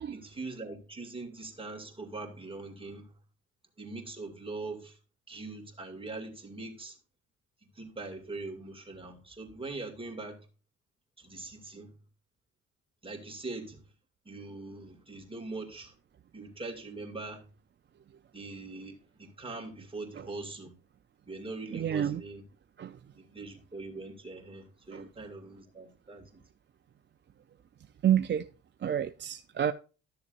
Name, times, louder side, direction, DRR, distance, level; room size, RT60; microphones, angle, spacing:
voice 1, 0.1-3.1 3.8-5.0 5.3-7.0 7.7-10.5 11.2-11.9 13.0-13.8 14.2-16.0 16.3-17.4 18.3-20.7 21.3-22.4 23.1-26.4, right 3 dB, 20° right, 2.4 m, -42 dB
voice 2, 21.7-22.2 22.8-23.0 24.9-25.1 28.0-28.5 28.8-29.7, right 10 dB, 35° right, 0.5 m, -29 dB
13.0 x 6.9 x 2.5 m
cardioid pair, 90°, 30 cm